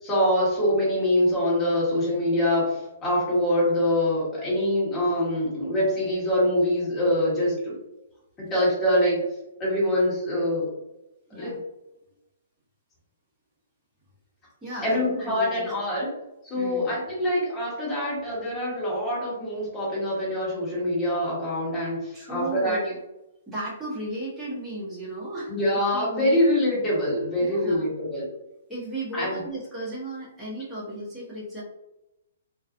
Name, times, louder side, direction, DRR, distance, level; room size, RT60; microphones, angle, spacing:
voice 1, 0.0-7.7 8.5-9.2 9.6-10.6 11.3-11.5 14.8-16.1 16.4-22.8 25.5-28.3 29.1-29.4, left 1 dB, 15° left, -8 dB, 1.4 m, -24 dB
voice 2, 14.6-15.7 16.5-16.9 22.1-23.0 23.5-26.4 27.4-27.9 28.7-31.6, right 1 dB, 5° right, -8 dB, 0.9 m, -35 dB
2.5 x 2.3 x 2.4 m, 0.92 s
hypercardioid pair, 150°, 0 cm